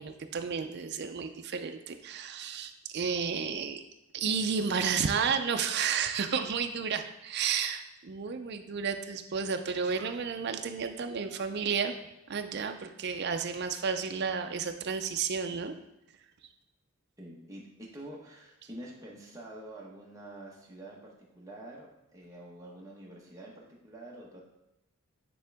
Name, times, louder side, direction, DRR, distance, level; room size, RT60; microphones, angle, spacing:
voice 1, 0.0-3.8 4.1-11.9 12.3-15.8, right 6 dB, 50° right, 7 dB, 0.4 m, -32 dB
voice 2, 17.2-24.4, right 1 dB, 15° right, -3 dB, 1.1 m, -47 dB
9.3 x 3.7 x 3.4 m, 0.91 s
head